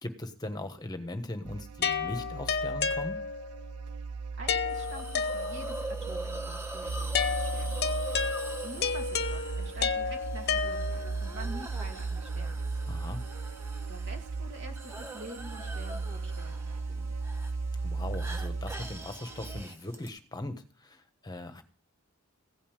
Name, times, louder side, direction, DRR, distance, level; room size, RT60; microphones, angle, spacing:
voice 1, 0.0-3.2 12.9-13.2 17.8-21.6, left 1 dB, 20° left, 8 dB, 1.3 m, -39 dB
sound 1, 1.4-19.6, right 4 dB, 85° right, 0.5 m, -36 dB
sound 2, 1.8-3.6 4.5-5.9 7.1-11.2, left 6 dB, 50° left, 0.8 m, -31 dB
voice 2, 4.4-7.8 8.6-12.6 13.9-17.1, right 1 dB, 55° right, 3 dB, 2.3 m, -47 dB
Hiss, 4.7-20.1, right 1 dB, 10° right, 1.3 m, -44 dB
16.0 x 5.5 x 9.0 m, 0.42 s
head